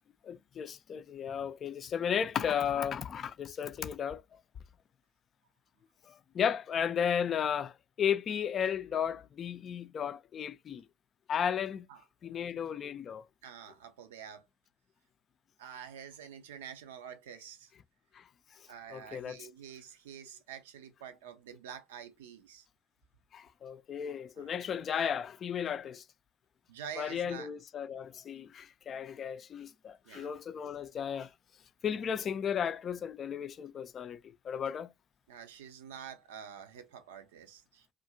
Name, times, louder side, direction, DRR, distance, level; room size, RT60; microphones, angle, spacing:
voice 1, 0.2-4.2 6.1-10.8 11.3-11.9 12.2-13.2 18.1-18.2 18.9-19.4 23.3-26.0 27.0-31.3 31.8-34.9, left 8 dB, 45° left, 0.3 m, -34 dB
voice 2, 13.4-14.5 15.6-17.7 18.7-22.7 24.4-24.6 26.7-27.5 30.1-30.3 35.3-37.9, right 8 dB, 80° right, 0.5 m, -47 dB
2.7 x 2.4 x 2.7 m
hypercardioid pair, 60°, 0 cm